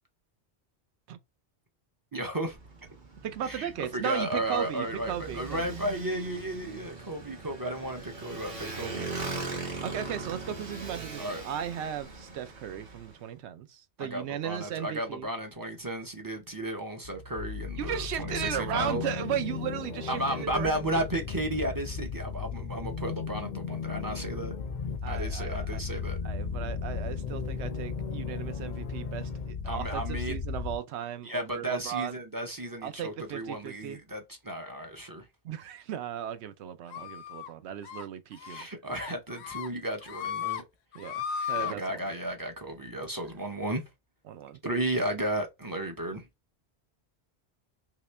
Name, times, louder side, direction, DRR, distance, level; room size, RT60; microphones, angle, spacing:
voice 1, 2.1-2.6 3.4-9.1 11.2-11.4 14.0-19.0 20.1-24.5 25.1-26.2 29.6-30.4 31.2-35.3 37.0-37.1 38.4-40.6 41.6-43.8 44.6-46.2, right 1 dB, 25° right, 0.5 m, -34 dB
Motorcycle, 2.5-13.2, right 3 dB, 50° right, 1.0 m, -40 dB
voice 2, 3.2-5.7 9.8-15.3 17.8-20.7 25.0-32.1 32.8-34.0 35.4-38.7 40.9-42.0 44.3-44.6, right 10 dB, 80° right, 0.8 m, -36 dB
sound 1, 17.0-30.8, left 6 dB, 55° left, 0.6 m, -35 dB
sound 2, 36.9-37.5 37.8-38.0 38.4-38.6 39.0-39.7 40.0-40.6 40.9-41.7, left 9 dB, 80° left, 0.8 m, -35 dB
3.0 x 2.9 x 3.2 m
omnidirectional pair, 1.1 m